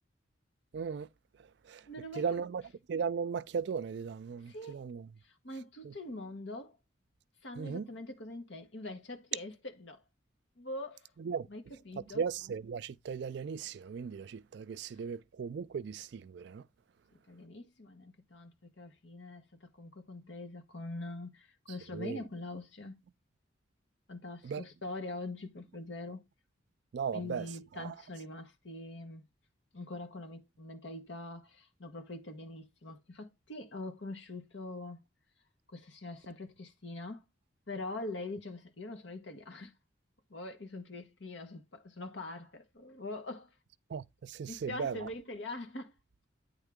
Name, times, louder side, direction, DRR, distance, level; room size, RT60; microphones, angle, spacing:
voice 1, 0.7-1.1 1.6-1.9 2.2-2.6 2.9-5.1 5.8-5.9 7.6-7.9 11.2-11.5 12.1-16.7 21.9-22.2 24.4-24.6 26.9-27.5 27.8-27.9 43.9-45.1, right 6 dB, 60° right, 0.3 m, -37 dB
voice 2, 1.9-2.5 4.4-4.8 5.2-6.8 7.4-10.0 10.6-11.1 11.5-12.2 14.9-15.0 17.3-23.0 24.1-26.2 27.1-29.2 29.7-35.0 35.7-37.2 37.7-39.7 40.3-43.5 44.5-46.0, left 2 dB, 65° left, 1.2 m, -43 dB
8.9 x 3.6 x 3.6 m
head